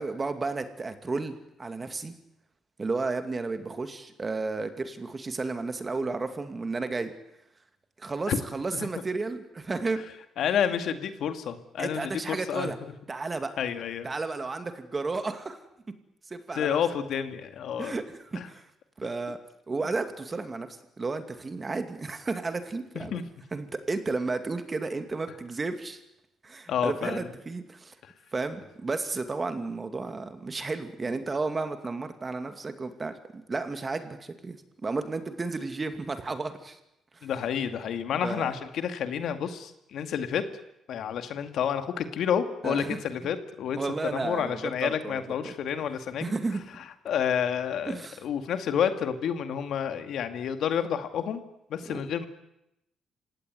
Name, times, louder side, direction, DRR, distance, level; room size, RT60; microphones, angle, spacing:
voice 1, 0.0-2.1 2.8-7.1 8.0-10.0 11.8-12.8 13.1-13.5 14.0-15.6 16.3-16.8 17.8-18.7 19.0-19.4 19.7-23.2 23.5-26.0 26.4-28.0 28.3-36.8 37.1-37.3 38.2-38.5 42.6-43.0 43.8-45.5 46.2-46.6 47.8-48.2 51.9-52.0, right 3 dB, 25° right, 8 dB, 2.4 m, -33 dB
voice 2, 10.4-12.9 13.6-14.1 16.6-17.9 18.4-18.5 23.0-23.2 26.7-27.3 28.0-28.1 37.2-40.4 40.9-46.3 47.1-51.4 51.7-52.3, left 8 dB, 70° left, 8 dB, 2.3 m, -29 dB
28.0 x 17.5 x 9.6 m, 0.86 s
cardioid pair, 120°, 0 cm